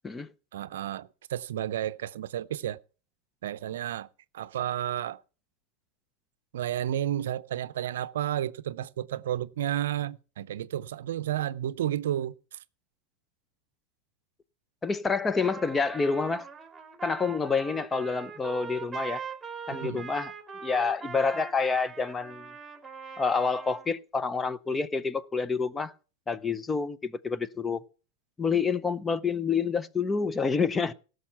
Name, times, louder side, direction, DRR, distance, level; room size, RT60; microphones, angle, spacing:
voice 1, 0.5-2.8 3.4-4.1 4.3-5.2 6.5-12.3 19.7-20.1, right 11 dB, 80° right, 0.5 m, -32 dB
voice 2, 14.8-16.5 17.0-19.2 19.7-20.3 20.6-22.5 23.2-25.9 26.3-27.8 28.4-30.9, left 5 dB, 20° left, 0.7 m, -28 dB
Trumpet, 15.4-23.9, right 6 dB, 15° right, 1.8 m, -42 dB
17.0 x 6.5 x 5.7 m
hypercardioid pair, 100°, 0 cm